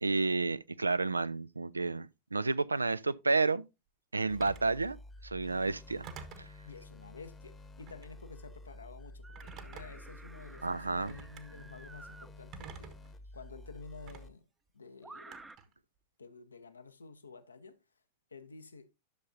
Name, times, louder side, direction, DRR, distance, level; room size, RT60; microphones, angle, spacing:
voice 1, 0.0-3.6 4.1-5.0 5.2-6.1 6.4-6.5 10.6-11.1, right 3 dB, 80° right, 0.3 m, -31 dB
sound 1, 4.3-14.3, left 2 dB, 15° left, 0.9 m, -51 dB
Telephone, 4.4-4.7 6.0-6.5 7.8-8.2 9.4-10.1 11.1-11.4 12.5-13.1 14.1-14.2 15.3-15.7, right 6 dB, 40° right, 1.1 m, -48 dB
voice 2, 6.6-14.5 14.7-15.5 16.2-17.8 18.3-18.9, left 4 dB, 75° left, 0.8 m, -51 dB
sound 2, 9.2-12.3 13.7-13.8 15.0-15.6, right 3 dB, 10° right, 0.6 m, -53 dB
11.5 x 6.6 x 2.6 m
figure-of-eight pair, 90°, 0 cm